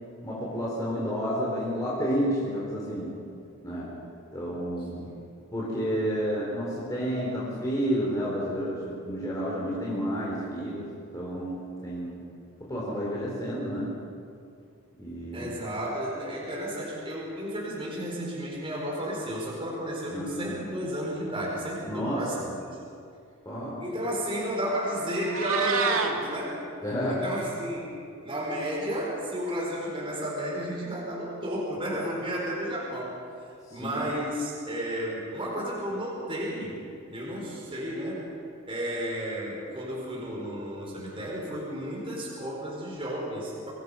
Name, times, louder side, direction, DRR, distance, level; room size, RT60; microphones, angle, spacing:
voice 1, 0.2-3.1 3.6-3.9 4.3-5.1 5.5-12.2 12.7-13.9 15.0-15.5 20.1-20.5 21.8-22.2 23.5-23.8 26.8-27.2 33.7-34.0, equal, 15° left, -6 dB, 3.9 m, -30 dB
voice 2, 15.3-22.7 23.8-26.6 27.1-33.2 33.7-38.3 38.7-43.7, right 1 dB, 25° right, -3 dB, 4.5 m, -32 dB
Meow, 25.1-26.1, right 4 dB, 75° right, 2.2 m, -27 dB
25.5 x 19.5 x 5.6 m, 2.4 s
head